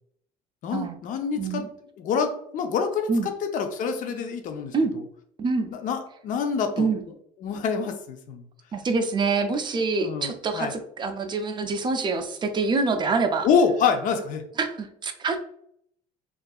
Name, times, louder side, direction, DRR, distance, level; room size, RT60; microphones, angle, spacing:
voice 1, 0.6-1.7 2.0-5.0 5.7-6.9 7.4-8.4 10.0-10.7 13.4-14.4, left 6 dB, 50° left, 6 dB, 0.5 m, -26 dB
voice 2, 1.3-1.7 3.1-3.3 4.7-4.9 5.4-5.7 6.8-7.0 8.7-13.5 14.6-15.4, right 4 dB, 25° right, 7 dB, 0.4 m, -26 dB
2.6 x 2.4 x 2.2 m, 0.69 s
cardioid pair, 115°, 17 cm